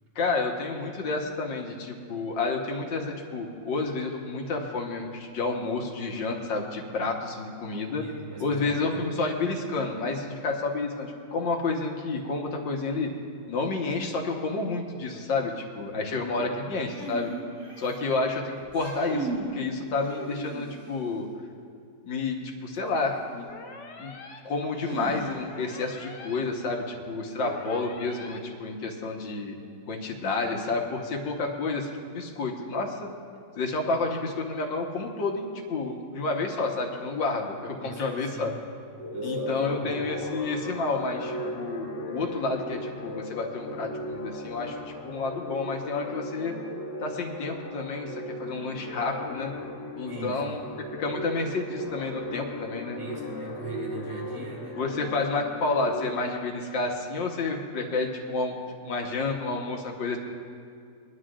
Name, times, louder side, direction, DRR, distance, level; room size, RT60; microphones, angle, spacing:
voice 1, 0.2-8.0 8.4-13.1 13.5-17.3 17.8-21.3 22.0-23.5 24.0-24.2 24.4-29.6 29.9-33.1 33.6-38.5 39.2-44.8 45.0-46.6 47.0-49.5 50.0-50.6 51.0-53.0 54.8-58.5 58.9-60.2, left 3 dB, 85° left, 1 dB, 2.0 m, -30 dB
voice 2, 8.0-9.0 16.1-16.5 27.4-27.9 37.8-38.6 39.1-40.1 50.1-50.4 52.9-54.8, right 2 dB, 15° right, -2 dB, 1.9 m, -40 dB
sound 1, 16.9-18.1 18.6-19.5 20.0-20.9 22.9-23.0 24.8-25.6, right 2 dB, 85° right, 3.6 m, -36 dB
sound 2, 23.5-24.4 25.5-26.4 27.5-28.4, left 3 dB, 70° left, 1.6 m, -45 dB
sound 3, 38.9-56.1, left 1 dB, 45° left, 0.9 m, -37 dB
22.0 x 12.0 x 2.5 m, 2.4 s
omnidirectional pair, 2.0 m